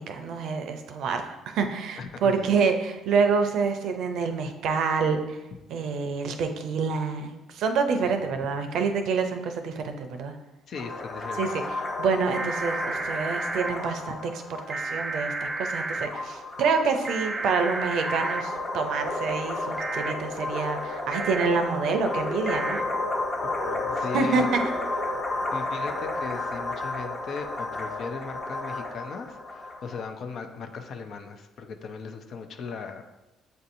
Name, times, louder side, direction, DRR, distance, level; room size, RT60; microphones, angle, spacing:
voice 1, 0.0-5.4 5.7-10.4 11.4-11.6 12.0-14.2 14.7-22.8 24.1-24.6, right 5 dB, 65° right, 6 dB, 0.5 m, -27 dB
voice 2, 2.0-2.6 8.0-8.2 10.7-11.4 23.6-24.5 25.5-33.0, left 5 dB, 60° left, 6 dB, 0.5 m, -38 dB
sound 1, 10.8-30.0, left 2 dB, 35° left, 1.1 m, -32 dB
sound 2, 12.3-13.7 14.7-16.1 17.0-18.4 19.8-20.1 21.1-21.5 22.5-22.8, right 3 dB, 15° right, 0.4 m, -31 dB
7.6 x 2.7 x 2.6 m, 1.0 s
hypercardioid pair, 60°, 0 cm